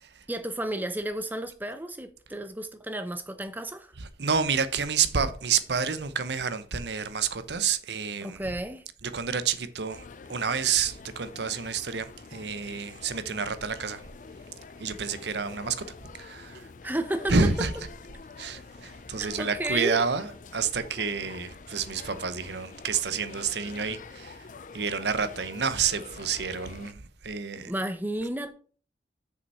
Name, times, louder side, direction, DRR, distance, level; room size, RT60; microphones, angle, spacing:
voice 1, 0.3-3.9 8.2-8.9 16.5-17.4 19.2-20.0 27.6-28.5, right 1 dB, 10° right, 0.7 m, -32 dB
voice 2, 4.2-8.4 9.0-10.0 10.3-14.0 14.8-15.8 16.2-16.7 17.3-17.7 18.4-20.3 20.5-24.4 24.7-27.7, right 5 dB, 70° right, 0.8 m, -29 dB
sound 1, 9.9-26.9, left 4 dB, 45° left, 0.5 m, -46 dB
6.6 x 5.3 x 5.5 m
head